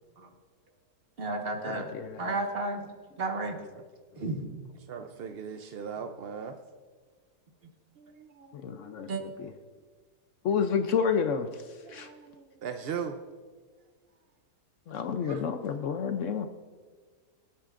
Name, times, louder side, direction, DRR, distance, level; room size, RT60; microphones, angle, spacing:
voice 1, 1.2-2.8 3.2-3.6 4.2-4.5 9.1-9.2, right 2 dB, 35° right, 3 dB, 1.5 m, -32 dB
voice 2, 1.7-2.3 8.5-9.5 10.4-12.1 14.9-16.5, left 6 dB, 65° left, 8 dB, 0.8 m, -30 dB
voice 3, 4.9-6.6 8.0-8.6 11.8-13.2 15.2-15.4, right 7 dB, 70° right, 6 dB, 0.5 m, -39 dB
24.5 x 8.5 x 2.5 m, 1.5 s
omnidirectional pair, 1.8 m